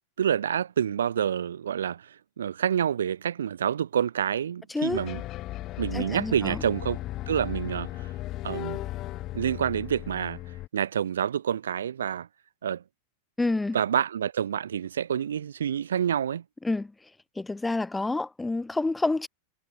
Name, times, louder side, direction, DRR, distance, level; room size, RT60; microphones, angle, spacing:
voice 1, 0.2-5.2 5.8-7.0 7.3-8.1 8.4-8.8 9.3-10.4 10.7-12.3 12.6-12.8 13.7-16.4, right 9 dB, 65° right, 7.5 m, -28 dB
voice 2, 4.7-5.0 5.9-6.6 13.4-13.8 16.6-16.9 17.4-19.3, left 2 dB, 10° left, 2.8 m, -28 dB
sound 1, 4.9-10.7, left 16 dB, 35° left, 5.6 m, -36 dB
figure-of-eight pair, 90°, 0 cm